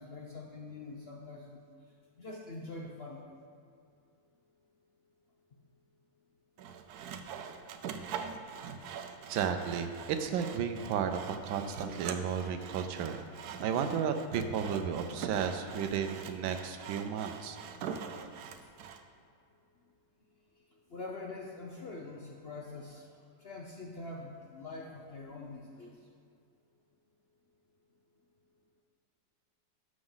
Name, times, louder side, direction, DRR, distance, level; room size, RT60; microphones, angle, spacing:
voice 1, 0.0-1.6 2.2-3.2 20.9-23.1 23.4-26.0, left 3 dB, 65° left, -1 dB, 0.6 m, -44 dB
Sawing, 6.6-19.0, right 7 dB, 70° right, 1.0 m, -43 dB
voice 2, 9.3-13.2 13.6-17.6, right 7 dB, 90° right, 7 dB, 1.4 m, -33 dB
12.5 x 6.2 x 3.9 m, 2.5 s
omnidirectional pair, 2.0 m